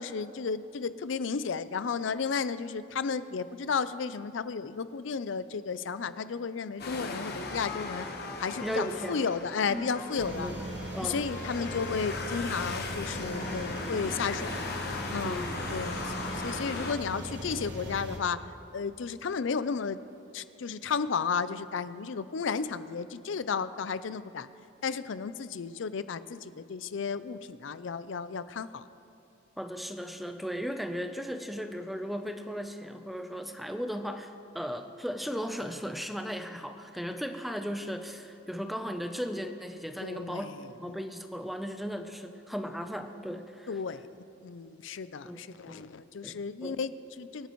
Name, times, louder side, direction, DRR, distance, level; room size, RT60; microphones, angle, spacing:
voice 1, 0.0-8.1 8.4-10.5 11.0-14.6 15.1-15.4 15.7-18.4 18.7-20.0 20.3-24.5 24.8-28.9 40.0-40.7 43.7-47.5, left 5 dB, 70° left, 14 dB, 0.5 m, -33 dB
sound 1, 6.8-16.9, left 3 dB, 55° left, 1.2 m, -38 dB
voice 2, 8.6-9.2 9.7-9.9 10.4-10.6 10.9-11.2 15.0-15.6 29.6-40.5 40.8-43.8 45.2-45.8 46.2-46.8, equal, ahead, 6 dB, 0.6 m, -36 dB
sound 2, 10.2-18.2, equal, 60° right, 1.6 m, -39 dB
25.5 x 9.3 x 3.1 m, 2.9 s
head